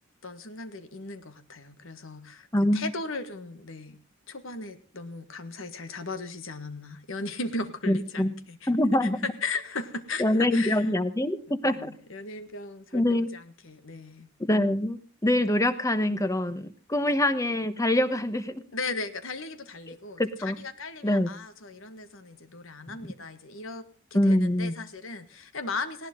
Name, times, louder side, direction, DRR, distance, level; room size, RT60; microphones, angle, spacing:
voice 1, 0.2-2.5 2.7-4.0 4.3-8.7 9.0-10.9 11.6-14.3 18.7-23.8 24.1-26.1, left 3 dB, 70° left, 11 dB, 1.6 m, -37 dB
voice 2, 2.5-2.9 7.9-8.3 8.7-9.2 10.2-11.9 12.9-13.3 14.5-18.6 20.2-20.6 21.0-21.3 24.1-24.7, left 1 dB, 15° left, 12 dB, 1.1 m, -24 dB
19.5 x 17.0 x 3.8 m, 0.36 s
head